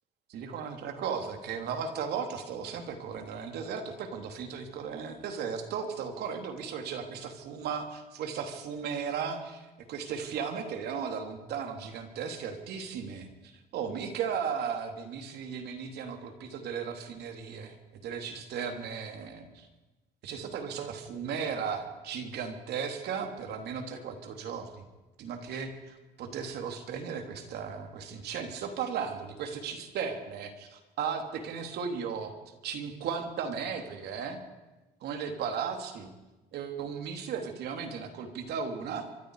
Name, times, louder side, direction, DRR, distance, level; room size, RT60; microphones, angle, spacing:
voice 1, 0.3-17.8 18.0-19.7 20.2-24.9 25.2-32.3 32.6-34.4 35.0-36.1 36.5-39.1, right 6 dB, 75° right, 5 dB, 3.1 m, -36 dB
25.5 x 24.0 x 4.9 m, 1.1 s
cardioid pair, 110°, 17 cm